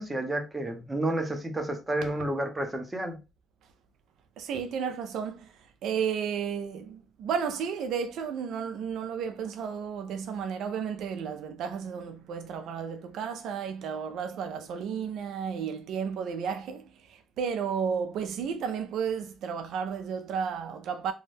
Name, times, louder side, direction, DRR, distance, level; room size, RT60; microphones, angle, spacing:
voice 1, 0.0-3.2, right 1 dB, 15° right, 0.7 m, -30 dB
voice 2, 4.4-21.1, right 7 dB, 75° right, 0.3 m, -33 dB
2.6 x 2.2 x 3.3 m
cardioid pair, 105°, 0 cm